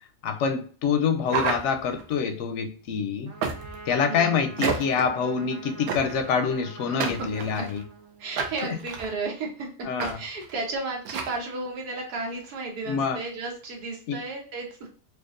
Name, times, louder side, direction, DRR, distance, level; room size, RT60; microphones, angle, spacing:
voice 1, 0.2-3.3 3.9-7.8 8.6-8.8 9.8-10.2 12.9-13.2 14.1-14.2, left 6 dB, 65° left, 7 dB, 0.7 m, -26 dB
sound 1, 1.3-2.1 3.4-3.9 4.6-5.1 5.9-6.3 7.0-7.8 8.4-9.1 10.0-10.1 10.4-10.5 11.1-11.4, right 5 dB, 75° right, 1.1 m, -30 dB
Trumpet, 3.3-8.5, right 4 dB, 55° right, 1.3 m, -45 dB
voice 2, 8.2-14.9, right 3 dB, 90° right, 0 dB, 1.4 m, -33 dB
4.5 x 2.4 x 2.5 m, 0.42 s
omnidirectional pair, 1.6 m